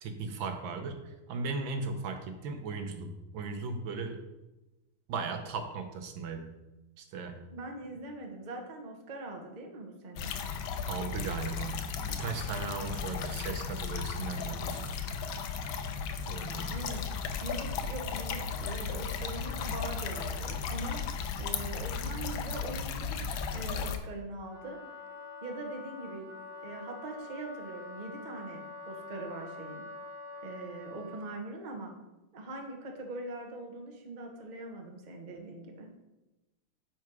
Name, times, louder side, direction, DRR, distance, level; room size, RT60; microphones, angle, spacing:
voice 1, 0.0-4.2 5.1-6.5 7.0-7.4 10.9-15.1 16.2-16.8, right 4 dB, 75° right, 6 dB, 1.5 m, -37 dB
voice 2, 7.5-10.3 16.7-17.0 17.4-21.0 21.4-23.2 23.5-24.8 25.4-26.3 26.6-29.8 30.4-31.9 32.3-35.9, right 2 dB, 30° right, 2 dB, 0.9 m, -42 dB
sound 1, 10.2-24.0, left 6 dB, 80° left, 1.5 m, -35 dB
Wind instrument woodwind instrument, 24.4-31.4, left 3 dB, 40° left, 2.7 m, -46 dB
9.3 x 4.6 x 4.7 m, 1.0 s
omnidirectional pair, 2.2 m